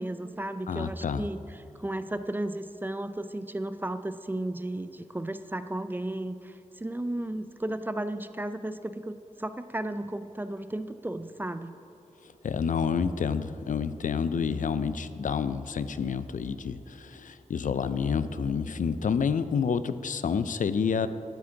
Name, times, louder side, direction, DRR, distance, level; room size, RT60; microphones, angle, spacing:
voice 1, 0.0-11.8, right 1 dB, 15° right, 11 dB, 0.4 m, -34 dB
voice 2, 0.7-1.2 12.4-21.1, left 6 dB, 80° left, 13 dB, 0.4 m, -29 dB
11.5 x 8.6 x 3.8 m, 2.9 s
wide cardioid pair, 85°, 13 cm